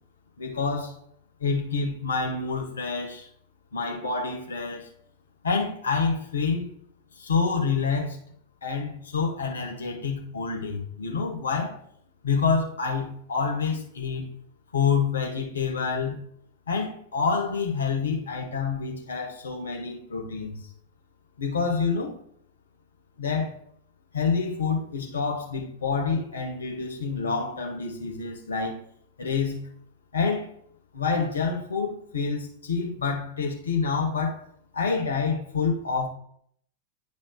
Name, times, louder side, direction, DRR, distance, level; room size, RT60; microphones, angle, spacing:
voice 1, 0.4-0.9 1.4-3.3 3.7-4.9 5.4-6.7 7.2-8.2 8.6-11.8 12.2-14.3 14.7-16.2 16.7-20.6 21.4-22.1 23.2-23.6 24.1-28.8 29.2-29.6 30.1-30.5 30.9-34.4 34.7-36.1, left 5 dB, 70° left, 1.5 m, -27 dB
10.5 x 5.1 x 2.4 m
figure-of-eight pair, 90°, 0 cm